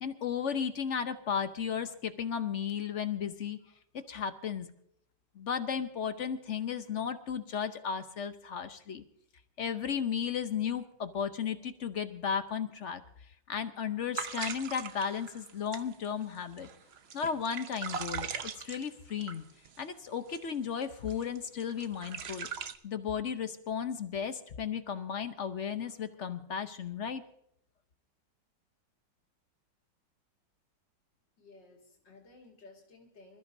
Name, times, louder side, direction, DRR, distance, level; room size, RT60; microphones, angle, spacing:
voice 1, 0.0-3.6 4.1-4.7 5.3-9.0 9.6-13.0 13.5-16.7 17.1-19.4 19.8-22.5 22.8-27.2, left 7 dB, 55° left, 9 dB, 0.9 m, -34 dB
sound 1, 14.1-19.8 20.3-20.5 20.8-22.8, right 6 dB, 55° right, 0.7 m, -40 dB
voice 2, 31.4-33.4, left 3 dB, 85° left, 0 dB, 2.8 m, -56 dB
26.5 x 14.0 x 2.7 m, 0.71 s
omnidirectional pair, 1.9 m